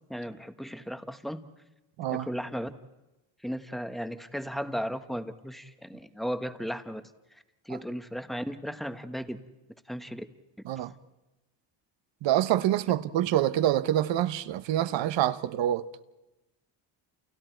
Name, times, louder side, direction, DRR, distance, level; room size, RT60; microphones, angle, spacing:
voice 1, 0.1-1.4 2.1-2.7 3.4-7.0 7.3-9.4 9.9-10.2 10.8-10.9, equal, ahead, 1.2 m, -35 dB
voice 2, 12.2-15.9, right 12 dB, 65° right, 1.1 m, -26 dB
30.0 x 29.5 x 4.5 m
cardioid pair, 125°, 47 cm